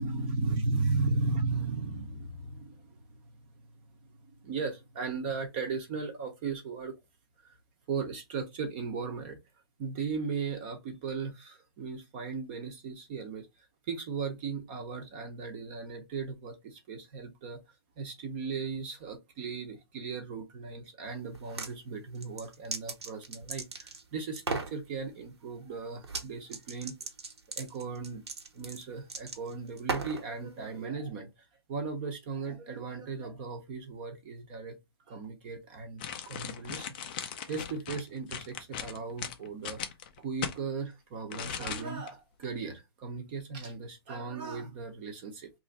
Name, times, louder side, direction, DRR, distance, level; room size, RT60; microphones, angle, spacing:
voice 1, 0.0-3.2 4.2-6.9 7.4-7.6 7.9-9.4 9.8-17.6 18.0-27.0 27.6-28.2 28.5-34.8 35.1-39.8 40.2-45.5, right 4 dB, 25° right, 0.6 m, -36 dB
sound 1, 21.3-21.7 22.1-24.0 24.4-24.7 26.0-26.3 26.5-30.3, right 4 dB, 90° right, 1.2 m, -37 dB
sound 2, 36.0-40.6 41.3-42.1 42.4-42.6, left 8 dB, 20° left, 0.4 m, -38 dB
3.0 x 2.5 x 4.1 m
hypercardioid pair, 165°, 14 cm